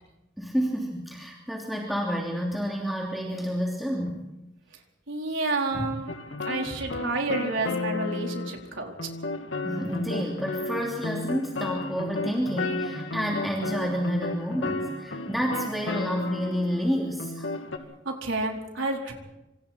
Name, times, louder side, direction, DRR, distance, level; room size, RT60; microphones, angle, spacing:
voice 1, 0.4-4.2 5.7-5.9 9.6-17.5, equal, ahead, -3 dB, 3.0 m, -29 dB
voice 2, 5.1-6.1 6.4-8.9 18.0-19.1, right 2 dB, 85° right, 1 dB, 4.4 m, -30 dB
sound 1, 6.1-8.6 9.0-16.8 17.2-17.8, left 2 dB, 80° left, 2.6 m, -33 dB
27.0 x 26.0 x 4.5 m, 0.95 s
head